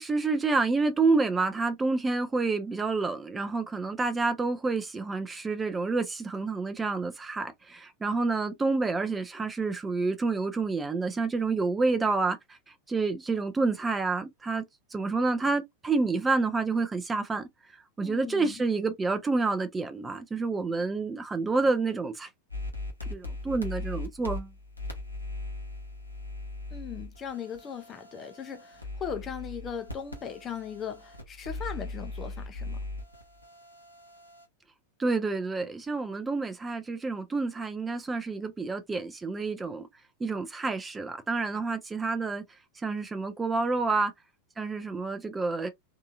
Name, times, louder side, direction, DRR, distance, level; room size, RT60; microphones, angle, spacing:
voice 1, 0.0-12.6 12.9-14.6 14.9-17.5 18.0-22.3 23.1-24.5 35.0-39.9 40.2-42.4 42.8-44.1 44.6-45.7, right 3 dB, 15° right, 0.6 m, -28 dB
voice 2, 18.0-18.6 26.7-32.8, left 7 dB, 25° left, 0.6 m, -38 dB
sound 1, 22.5-34.4, left 2 dB, 85° left, 1.1 m, -39 dB
3.7 x 2.7 x 2.4 m
figure-of-eight pair, 90°, 0 cm